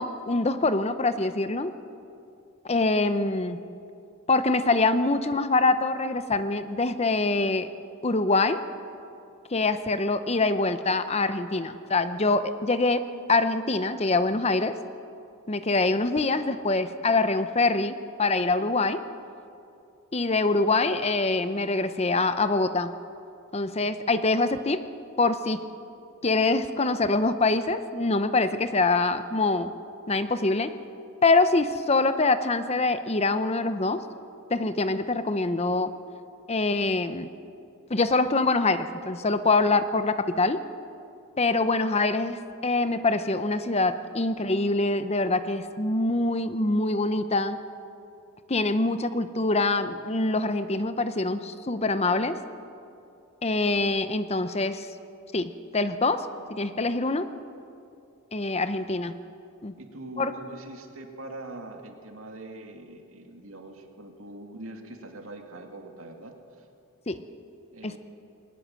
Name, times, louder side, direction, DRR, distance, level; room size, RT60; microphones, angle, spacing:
voice 1, 0.0-1.7 2.6-3.6 4.3-7.7 8.0-8.6 9.5-13.0 13.3-14.8 15.5-19.0 20.1-22.9 23.5-24.8 25.2-25.6 26.2-29.7 30.1-30.7 31.2-34.0 34.5-35.9 36.5-37.3 37.9-40.6 41.4-47.6 48.5-52.4 53.4-54.9 55.3-57.3 58.3-59.1 59.6-59.7 60.2-60.3 67.1-67.2 67.8-68.0, left 3 dB, 30° left, 11 dB, 0.7 m, -24 dB
voice 2, 56.4-56.8 58.7-58.8 59.8-66.7 67.7-68.0, right 2 dB, 70° right, 4 dB, 2.4 m, -43 dB
21.0 x 19.0 x 7.7 m, 2.6 s
head